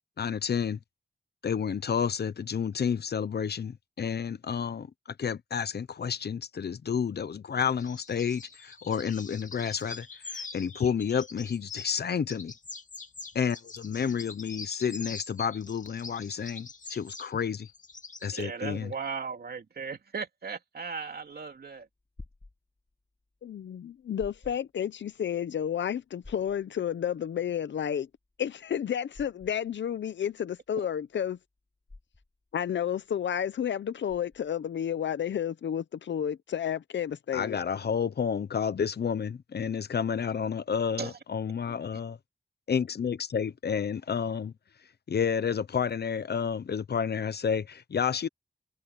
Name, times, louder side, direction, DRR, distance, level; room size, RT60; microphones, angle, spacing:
voice 1, 0.2-0.8 1.4-4.9 5.2-12.5 13.3-17.7 18.2-18.9 37.3-42.2 42.7-44.5 45.1-48.3, left 7 dB, 65° left, 1.0 m, -30 dB
sound 1, 7.8-12.0 12.3-18.4, left 4 dB, 45° left, 2.8 m, -44 dB
voice 2, 18.3-21.9 30.8-30.9 41.0-41.2 41.7-41.8, right 5 dB, 60° right, 2.7 m, -37 dB
sound 2, 21.2-34.7, left 2 dB, 25° left, 2.8 m, -53 dB
voice 3, 23.4-28.1 28.4-31.4 32.5-37.6, left 9 dB, 90° left, 0.8 m, -31 dB
wide cardioid pair, 85°, 18 cm